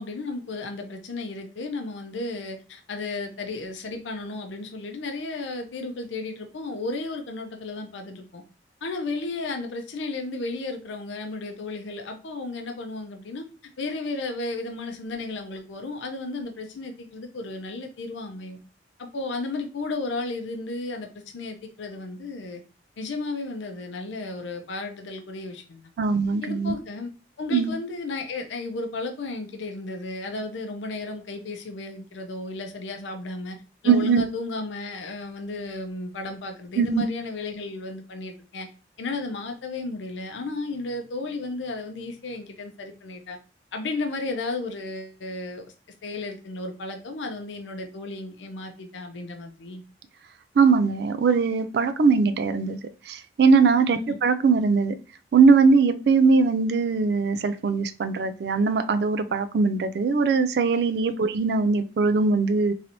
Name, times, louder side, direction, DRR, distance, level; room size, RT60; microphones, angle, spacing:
voice 1, 0.0-8.4 8.8-13.4 13.8-18.6 19.0-22.6 23.0-25.8 26.4-27.1 27.4-33.6 33.8-38.7 39.0-43.4 43.7-45.7 46.0-49.8 54.0-54.2, left 3 dB, 80° left, 0.5 m, -33 dB
voice 2, 26.0-26.7 27.5-27.7 33.8-34.2 36.8-37.0 50.6-52.8 53.1-55.0 55.3-62.7, right 4 dB, 60° right, 0.3 m, -21 dB
3.1 x 2.6 x 2.8 m
head